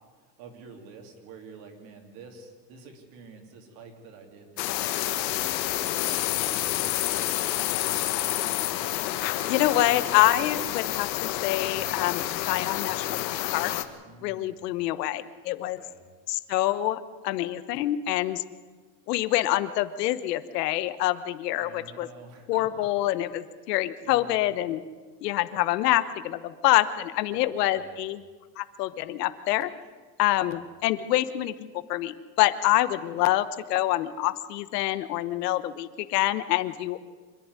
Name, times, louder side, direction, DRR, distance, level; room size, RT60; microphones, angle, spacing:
voice 1, 0.4-5.2 6.0-7.5 14.0-14.8 15.6-16.0 21.6-22.8 23.7-23.8 24.0-24.5 27.3-28.0 30.4-30.6, right 4 dB, 45° right, 4 dB, 3.1 m, -49 dB
sound 1, 4.6-13.8, left 14 dB, 90° left, 1.6 m, -29 dB
voice 2, 9.5-13.2 13.5-13.7 14.2-15.8 16.3-18.4 19.1-22.1 22.5-24.8 25.2-28.2 28.6-29.7 30.2-37.0, left 15 dB, 70° left, 14 dB, 1.1 m, -26 dB
26.0 x 11.0 x 9.6 m, 1.4 s
supercardioid pair, 175°, 49 cm